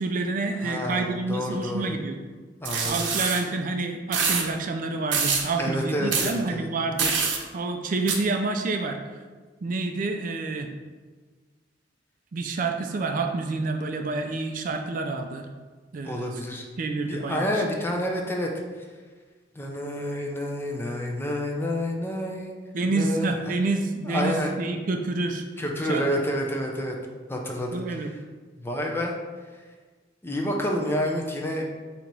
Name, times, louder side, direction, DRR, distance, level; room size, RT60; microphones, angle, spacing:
voice 1, 0.0-2.2 2.8-9.0 9.6-10.7 12.3-15.5 15.9-16.3 16.8-17.4 22.7-25.4 25.8-26.1 27.7-28.1, right 3 dB, 45° right, 5 dB, 0.4 m, -28 dB
voice 2, 0.6-1.9 2.6-2.9 5.6-6.7 16.0-16.6 17.1-18.5 19.6-22.5 22.9-23.6 24.0-24.6 25.6-27.0 27.3-28.1 28.6-29.1 30.2-31.6, equal, 10° left, 0 dB, 0.5 m, -29 dB
sound 1, 2.6-3.4 4.1-4.4 5.1-5.5 6.1-6.3 7.0-7.4 8.1-8.2, right 5 dB, 85° right, 0.7 m, -25 dB
4.0 x 2.9 x 4.5 m, 1.4 s
head